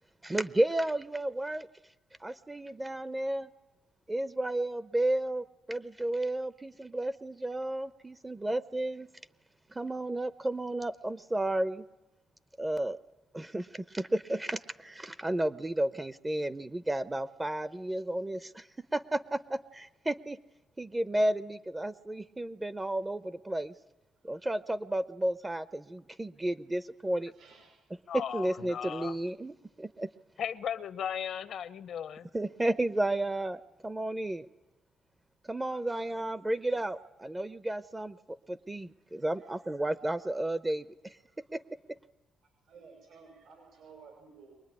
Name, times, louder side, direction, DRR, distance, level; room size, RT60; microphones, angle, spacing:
voice 1, 0.2-1.7 2.2-3.5 4.1-9.1 9.7-11.8 12.6-13.0 13.3-18.7 18.9-20.4 20.8-23.7 24.2-27.3 28.1-30.1 32.3-34.5 35.5-38.2 38.5-41.1 41.5-41.6, right 1 dB, 15° right, 14 dB, 0.8 m, -32 dB
voice 2, 27.3-27.8 35.7-36.8 39.3-39.6 42.4-44.5, right 5 dB, 75° right, 4 dB, 5.8 m, -56 dB
voice 3, 28.1-29.2 30.4-32.3, left 8 dB, 70° left, 14 dB, 0.9 m, -36 dB
23.5 x 20.0 x 9.8 m, 1.1 s
cardioid pair, 90°, 0 cm